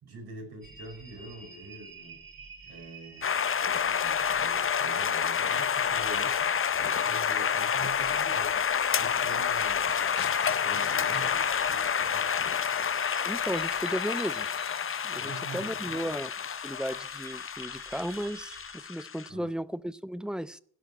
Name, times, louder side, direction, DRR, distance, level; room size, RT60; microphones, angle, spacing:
voice 1, 0.0-2.2 2.7-3.3 3.6-6.5 6.8-10.0 10.5-12.3 15.1-16.1 19.3-19.5, right 2 dB, 90° right, 5.3 m, -45 dB
sound 1, 0.6-18.8, right 3 dB, 65° right, 3.4 m, -50 dB
sound 2, 3.2-19.3, left 7 dB, 35° left, 0.6 m, -29 dB
sound 3, 8.8-11.6 11.9-12.0, left 12 dB, 75° left, 0.7 m, -47 dB
voice 2, 13.2-14.5 15.0-16.3 16.6-20.6, equal, ahead, 0.6 m, -35 dB
16.5 x 5.7 x 9.6 m
supercardioid pair, 55°, 37 cm